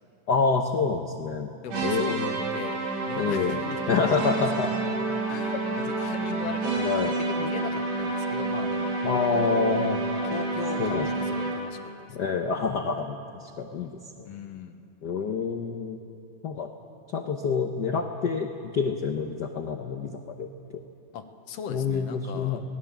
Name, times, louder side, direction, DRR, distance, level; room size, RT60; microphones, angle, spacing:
voice 1, 0.3-1.5 1.8-2.4 3.2-3.6 3.9-4.9 5.5-5.6 5.9-6.0 6.8-7.1 9.0-10.0 10.8-11.1 12.1-13.9 14.2-14.3 15.0-16.0 16.4-16.7 17.1-18.5 18.7-20.5 21.7-22.6, left 5 dB, 90° left, 4 dB, 0.9 m, -27 dB
voice 2, 1.6-4.4 5.3-6.8 7.1-9.0 9.3-9.6 10.3-12.2 14.2-14.8 21.1-22.6, left 7 dB, 65° left, 7 dB, 2.1 m, -39 dB
sound 1, 1.7-11.8, right 3 dB, 65° right, 3.5 m, -29 dB
26.5 x 18.5 x 7.3 m, 2.8 s
omnidirectional pair, 3.3 m